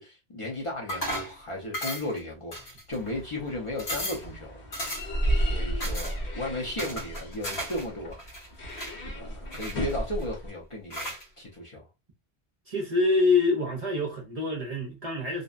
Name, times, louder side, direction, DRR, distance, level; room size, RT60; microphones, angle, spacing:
voice 1, 0.0-4.7 5.3-8.2 9.1-11.9, left 1 dB, 40° left, 0.6 m, -35 dB
sound 1, 0.9-1.4 1.7-2.2 2.5-3.1 3.5-3.6 3.8-4.3 4.7-5.2 5.8-6.1 6.8-7.8 8.1-8.9 9.5-10.2 10.9-11.2, equal, 85° left, 1.2 m, -35 dB
sound 2, 2.9-10.5, right 1 dB, 60° left, 1.2 m, -33 dB
voice 2, 12.7-15.4, left 3 dB, 45° right, 0.5 m, -25 dB
2.6 x 2.1 x 2.4 m
omnidirectional pair, 1.0 m